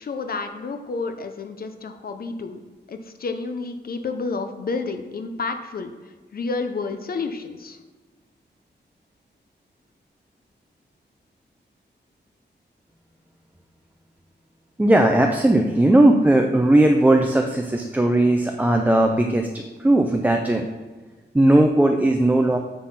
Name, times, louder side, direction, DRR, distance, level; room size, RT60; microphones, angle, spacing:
voice 1, 0.0-2.6 2.9-5.9 6.3-7.8, left 4 dB, 55° left, 7 dB, 0.6 m, -30 dB
voice 2, 14.8-20.7 21.3-22.6, right 1 dB, 10° right, 3 dB, 0.4 m, -18 dB
8.5 x 3.8 x 5.6 m, 1.3 s
wide cardioid pair, 155°, 18 cm